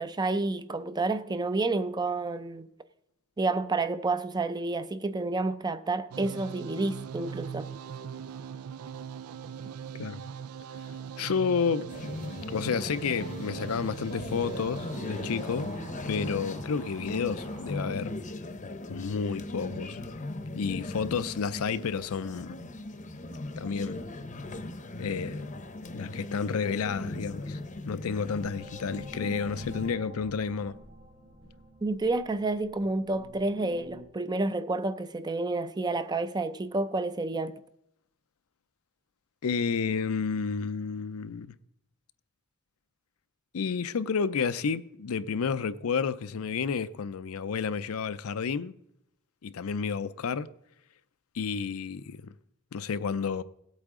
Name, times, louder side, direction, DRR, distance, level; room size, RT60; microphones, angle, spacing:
voice 1, 0.0-2.7 3.4-7.7 31.8-37.5, right 2 dB, 20° right, 0.5 m, -29 dB
sound 1, 6.1-17.9, right 7 dB, 80° right, 0.4 m, -42 dB
voice 2, 11.2-11.9 12.5-15.7 16.1-18.1 18.9-20.0 20.5-22.6 23.6-24.0 25.0-25.5 25.9-27.6 27.9-30.8 39.4-41.5 43.5-48.8 49.4-50.5 51.3-52.3 52.7-53.4, left 5 dB, 75° left, 0.5 m, -31 dB
sound 2, 11.9-29.9, left 2 dB, 35° left, 0.8 m, -38 dB
sound 3, 27.7-34.0, right 1 dB, 45° right, 2.5 m, -48 dB
17.5 x 8.3 x 3.7 m
head